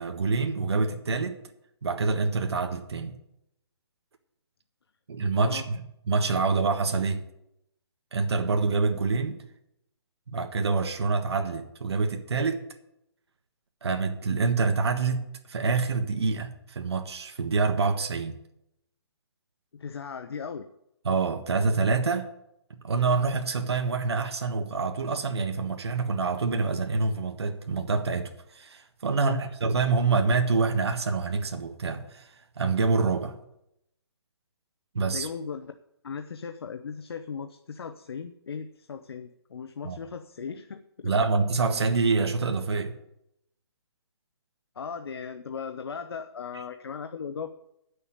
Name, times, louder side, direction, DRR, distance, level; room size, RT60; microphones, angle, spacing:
voice 1, 0.0-1.4 1.8-3.1 5.1-7.3 8.1-9.4 10.3-12.7 13.8-15.2 15.5-18.4 21.0-22.3 22.7-32.3 32.6-33.4 34.9-35.3 39.8-40.0 41.0-42.9, right 4 dB, 70° right, 1.4 m, -26 dB
voice 2, 19.7-20.6 29.1-29.4 35.1-35.8 36.0-41.1 44.8-47.5, left 6 dB, 65° left, 0.8 m, -37 dB
9.5 x 6.8 x 8.7 m
hypercardioid pair, 175°, 14 cm